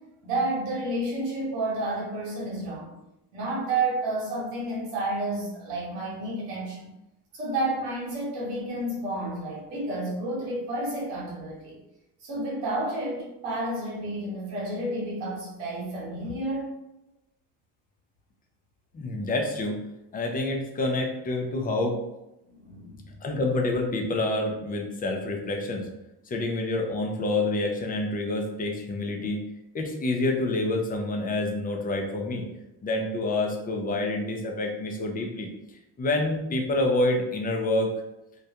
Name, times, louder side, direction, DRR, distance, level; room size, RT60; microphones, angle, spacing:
voice 1, 0.2-2.9 3.3-6.9 7.3-11.8 12.2-16.8 22.6-23.1, right 2 dB, 85° right, -5 dB, 1.0 m, -30 dB
voice 2, 18.9-19.8 20.1-22.0 23.2-25.9 26.3-29.4 29.7-32.4 32.8-35.5 36.0-37.9, left 2 dB, 20° left, 2 dB, 0.4 m, -27 dB
2.2 x 2.1 x 2.8 m, 0.92 s
supercardioid pair, 80°, 45 cm